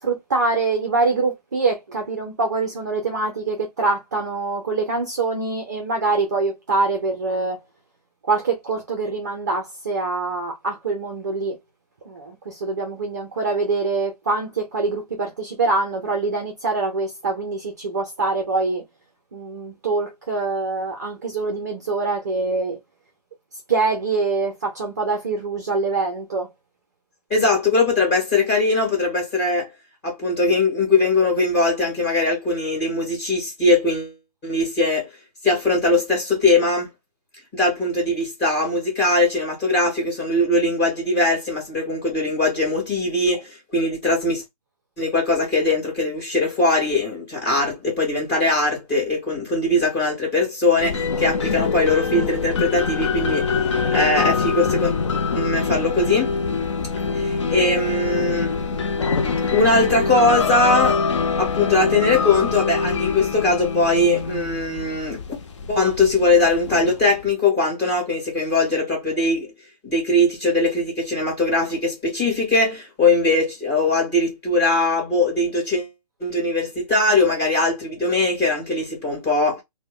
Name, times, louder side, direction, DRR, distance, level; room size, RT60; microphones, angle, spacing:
voice 1, 0.0-7.6 8.3-11.6 12.0-18.8 19.3-22.8 23.7-26.5, right 3 dB, 25° right, 0.5 m, -24 dB
voice 2, 27.3-29.7 30.0-34.1 34.4-35.1 35.4-36.9 37.5-44.4 45.0-53.6 53.9-54.9 55.3-56.3 57.1-58.5 59.5-61.0 61.4-65.4 65.7-69.5 69.8-75.9 76.2-79.6, left 2 dB, 15° left, 2.0 m, -21 dB
sound 1, 50.8-67.3, left 5 dB, 45° left, 0.5 m, -24 dB
3.4 x 2.1 x 3.5 m
hypercardioid pair, 180°, 20 cm